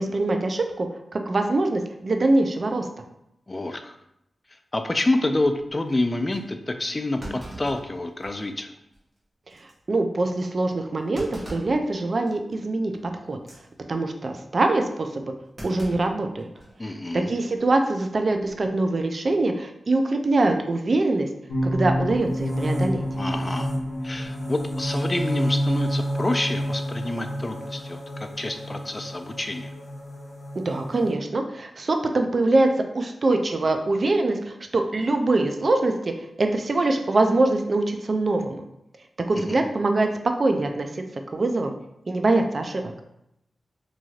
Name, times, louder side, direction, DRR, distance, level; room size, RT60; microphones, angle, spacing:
voice 1, 0.0-2.9 9.9-13.4 13.9-15.3 15.6-16.5 17.1-21.3 21.6-23.0 30.6-32.7 32.9-35.9 36.4-38.6 39.3-40.1 40.4-41.0 41.3-41.7 42.1-42.9, right 2 dB, 55° right, 5 dB, 0.4 m, -23 dB
voice 2, 3.5-3.9 4.7-8.7 16.8-17.3 23.2-23.7 24.0-29.7 39.4-39.7, left 2 dB, 30° left, 7 dB, 0.3 m, -28 dB
Thump thud, 5.7-5.8 6.3-6.4 7.2-8.5 8.9-9.0 9.5-9.7 11.1-11.8 12.3-12.5 13.3-13.6 15.6-16.8 17.1-17.2 18.3-18.7, right 1 dB, 30° right, 0.9 m, -40 dB
sound 1, 21.5-31.1, equal, 85° left, 0.7 m, -29 dB
3.1 x 2.5 x 2.4 m, 0.81 s
cardioid pair, 65°, 0 cm